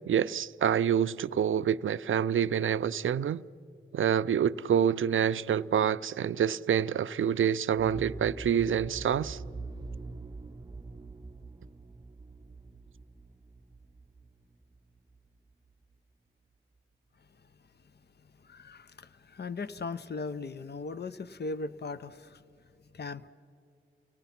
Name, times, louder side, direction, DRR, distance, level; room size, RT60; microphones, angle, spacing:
voice 1, 0.1-3.4 3.9-9.4, right 8 dB, 70° right, 0.4 m, -27 dB
sound 1, 7.8-15.5 15.8-15.9, right 3 dB, 20° right, 0.6 m, -44 dB
voice 2, 18.4-22.4 22.9-23.3, left 3 dB, 50° left, 0.7 m, -38 dB
28.5 x 18.5 x 5.8 m
cardioid pair, 65°, 21 cm